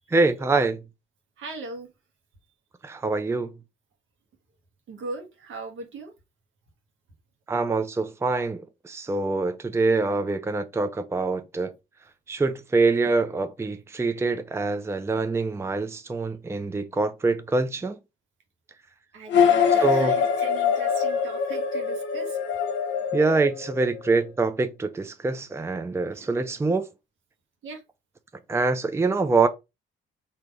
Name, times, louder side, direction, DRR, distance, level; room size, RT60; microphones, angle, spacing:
voice 1, 0.1-0.8 2.8-3.5 7.5-11.7 12.3-18.0 19.8-20.1 23.1-26.9 28.5-29.5, right 3 dB, 15° right, 0.5 m, -25 dB
voice 2, 1.4-1.9 4.9-6.1 19.1-22.4 26.0-26.3 27.6-27.8, right 3 dB, 75° right, 1.3 m, -39 dB
sound 1, 19.3-24.1, left 7 dB, 70° left, 0.8 m, -24 dB
3.8 x 2.8 x 4.7 m
cardioid pair, 90°, 20 cm